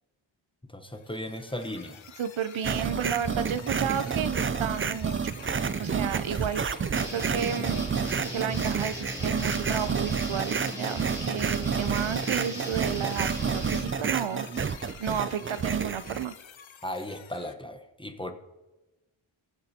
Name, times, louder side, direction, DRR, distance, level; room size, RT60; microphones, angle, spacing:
voice 1, 0.7-2.0 3.7-3.9 16.8-18.3, left 1 dB, 10° left, 7 dB, 0.9 m, -36 dB
sound 1, 0.9-17.5, left 7 dB, 65° left, 0.8 m, -48 dB
voice 2, 2.2-5.4 5.8-7.9 8.3-14.5 15.0-16.3, right 8 dB, 70° right, 12 dB, 0.6 m, -32 dB
sound 2, 2.6-16.2, right 6 dB, 30° right, 0.4 m, -30 dB
sound 3, 7.0-13.8, equal, 5° right, 2.3 m, -38 dB
21.0 x 7.5 x 2.8 m, 1.1 s
wide cardioid pair, 55°, 50 cm